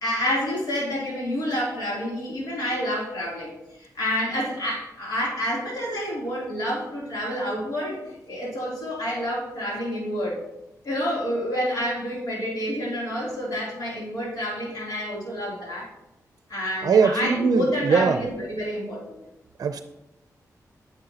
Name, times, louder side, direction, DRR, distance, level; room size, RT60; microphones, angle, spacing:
voice 1, 0.0-3.5 3.8-10.4 10.8-15.9 16.5-19.2, equal, 85° left, -4 dB, 2.9 m, -28 dB
voice 2, 16.8-18.2 19.6-19.8, right 5 dB, 75° right, 9 dB, 0.5 m, -21 dB
9.8 x 7.0 x 2.8 m, 0.90 s
cardioid pair, 85°, 6 cm